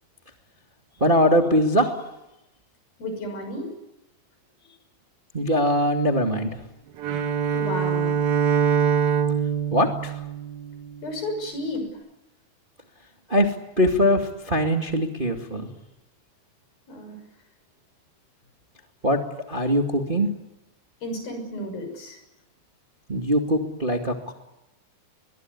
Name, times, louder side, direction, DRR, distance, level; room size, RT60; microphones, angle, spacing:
voice 1, 1.0-1.9 5.3-6.6 9.7-10.2 13.3-15.7 19.0-19.2 19.5-20.3 23.1-24.3, equal, 20° right, 4 dB, 1.7 m, -22 dB
voice 2, 3.0-3.7 7.5-8.2 11.0-11.9 16.9-17.2 21.0-22.2, left 1 dB, 75° left, 6 dB, 8.2 m, -32 dB
Bowed string instrument, 7.0-11.2, right 7 dB, 85° right, 3.4 m, -24 dB
23.0 x 22.0 x 9.6 m, 0.92 s
omnidirectional pair, 4.2 m